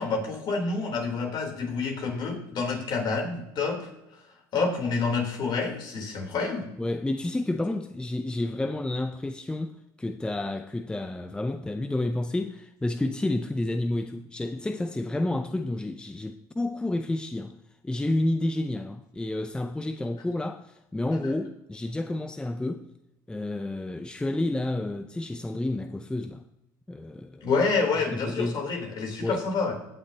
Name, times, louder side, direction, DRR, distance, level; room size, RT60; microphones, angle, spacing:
voice 1, 0.0-3.8 4.5-6.7 21.2-21.3 27.4-29.7, left 4 dB, 55° left, 3.6 m, -28 dB
voice 2, 6.8-17.5 17.8-22.9 23.3-26.4 26.9-27.5 28.1-28.6 29.2-29.4, left 2 dB, 10° left, 0.6 m, -30 dB
16.5 x 8.4 x 2.9 m
supercardioid pair, 85°, 9 cm